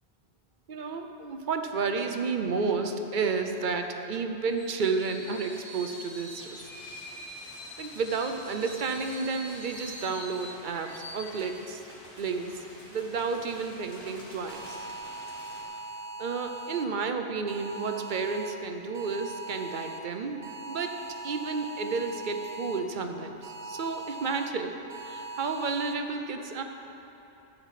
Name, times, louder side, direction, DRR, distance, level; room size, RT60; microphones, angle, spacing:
voice 1, 0.7-6.7 7.8-11.8 12.2-14.9 16.2-20.4 20.7-26.6, right 4 dB, 55° right, 6 dB, 0.7 m, -31 dB
Screech, 4.5-10.5, left 1 dB, 15° left, 2.3 m, -45 dB
sound 1, 6.4-15.6, left 1 dB, 50° left, 1.7 m, -47 dB
sound 2, 14.5-16.9 17.5-18.5 18.9-20.0 20.4-22.8 23.4-24.5 24.9-25.9, right 2 dB, 80° right, 1.5 m, -40 dB
12.0 x 4.5 x 7.4 m, 3.0 s
omnidirectional pair, 1.2 m